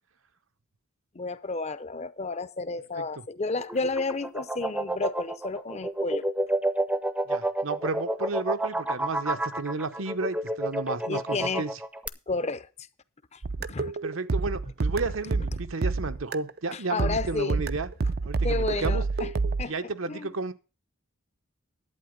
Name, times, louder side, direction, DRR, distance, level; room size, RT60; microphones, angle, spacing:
voice 1, 1.1-6.2 11.0-11.6 12.3-12.7 13.3-13.4 13.7-13.9 16.7-17.6 18.4-19.3 19.6-19.7 20.1-20.3, left 3 dB, 35° left, 0.7 m, -31 dB
sound 1, 3.6-12.1, right 1 dB, 5° right, 0.6 m, -29 dB
voice 2, 7.3-11.7 14.0-17.9 18.2-19.0 19.6-20.5, right 3 dB, 80° right, 1.0 m, -32 dB
sound 2, 13.4-16.6 17.0-19.6, right 3 dB, 50° right, 0.5 m, -28 dB
11.0 x 8.7 x 5.2 m
head